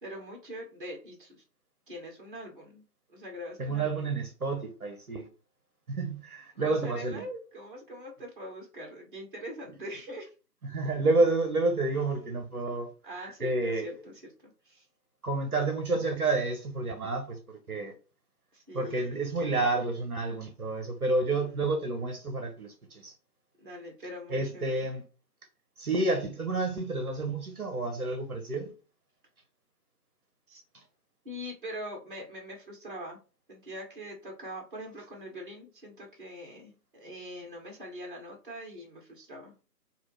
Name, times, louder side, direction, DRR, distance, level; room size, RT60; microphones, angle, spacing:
voice 1, 0.0-1.4 1.9-4.2 6.6-10.3 13.0-14.9 18.5-19.2 21.3-21.5 23.6-24.9 30.5-30.6 31.2-33.2 33.5-39.5, equal, 30° right, 1.0 m, -43 dB
voice 2, 3.6-5.3 5.9-7.2 10.7-12.9 13.2-13.9 15.2-17.9 18.7-23.1 24.3-25.0 25.8-28.7 30.7-30.8, right 2 dB, 60° right, 0.9 m, -30 dB
3.6 x 2.4 x 3.1 m
figure-of-eight pair, 150°, 50 cm